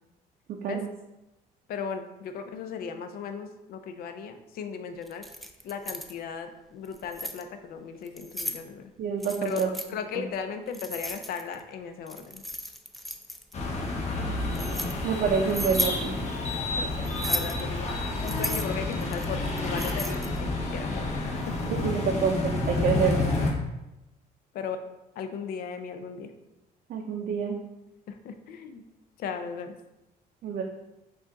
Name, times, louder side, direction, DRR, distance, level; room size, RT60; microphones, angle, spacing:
voice 1, 1.7-5.2 5.6-8.9 9.4-12.4 16.7-16.9 17.2-21.1 21.5-21.7 22.8-23.1 24.5-24.8 25.2-26.3 28.1-28.8 29.2-29.7, left 6 dB, 65° left, 8 dB, 0.5 m, -37 dB
Keys jangling, 5.1-6.1 6.9-7.4 8.1-8.6 9.2-9.9 10.7-11.6 12.1-13.5 14.2-14.9 15.5-16.0 17.1-17.6 18.2-20.4, equal, ahead, 0.3 m, -34 dB
voice 2, 9.0-9.7 15.0-16.2 21.7-23.2 26.9-27.6 30.4-30.6, right 6 dB, 55° right, 1 dB, 0.5 m, -27 dB
sound 1, 13.5-23.5, left 2 dB, 40° left, 0.8 m, -30 dB
4.9 x 2.5 x 3.9 m, 0.96 s
cardioid pair, 110°, 17 cm